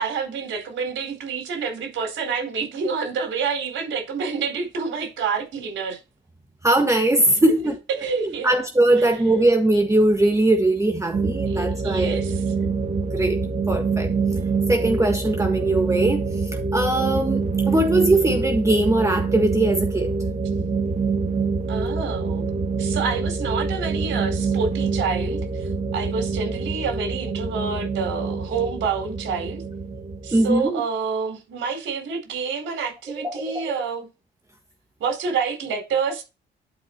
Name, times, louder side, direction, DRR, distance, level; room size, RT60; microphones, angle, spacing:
voice 1, 0.0-6.0 7.6-8.7 8.9-9.1 11.5-12.4 21.7-22.5 22.8-29.6 30.2-34.1 35.0-36.2, right 5 dB, 75° right, 4.6 m, -28 dB
voice 2, 6.6-7.8 8.2-12.2 13.1-13.4 13.7-14.1 14.7-16.2 16.7-20.1 30.3-30.8 33.2-33.6, right 1 dB, 15° right, 1.5 m, -20 dB
sound 1, 11.1-30.6, right 4 dB, 35° right, 1.8 m, -26 dB
11.5 x 5.4 x 3.4 m
cardioid pair, 90°, 20 cm